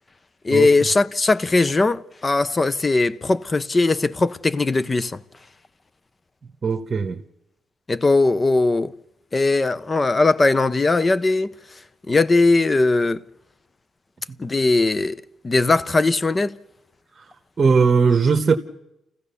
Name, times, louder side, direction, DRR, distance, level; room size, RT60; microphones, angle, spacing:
voice 1, 0.4-5.2 7.9-8.9 9.3-11.5 12.1-13.2 14.4-16.6, left 3 dB, 25° left, 0.7 m, -19 dB
voice 2, 6.6-7.2 17.2-17.3 17.6-18.6, right 5 dB, 40° right, 1.2 m, -18 dB
29.0 x 15.5 x 6.9 m
cardioid pair, 90°, 0 cm